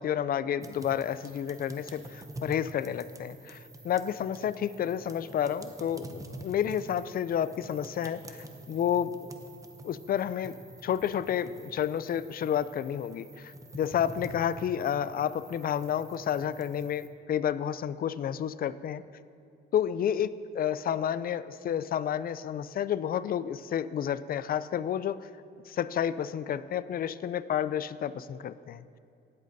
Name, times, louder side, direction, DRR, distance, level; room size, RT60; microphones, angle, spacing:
voice 1, 0.0-9.3 9.8-10.5 10.8-19.0 19.7-25.3 25.7-28.9, left 9 dB, 50° left, 15 dB, 0.4 m, -30 dB
sound 1, 0.6-17.1, right 1 dB, 15° right, 0.8 m, -47 dB
17.5 x 7.6 x 2.7 m, 2.4 s
cardioid pair, 90°, 20 cm